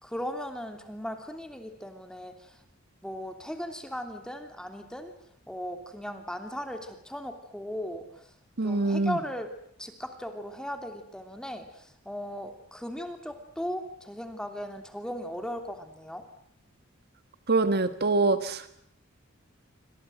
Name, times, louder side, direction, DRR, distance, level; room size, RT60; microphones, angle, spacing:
voice 1, 0.0-2.6 3.0-5.1 5.5-8.3 8.6-9.5 9.8-16.2, equal, 5° left, 6 dB, 3.0 m, -37 dB
voice 2, 8.6-9.2 17.5-18.6, right 3 dB, 50° right, 11 dB, 1.4 m, -24 dB
28.5 x 25.0 x 7.8 m, 0.70 s
head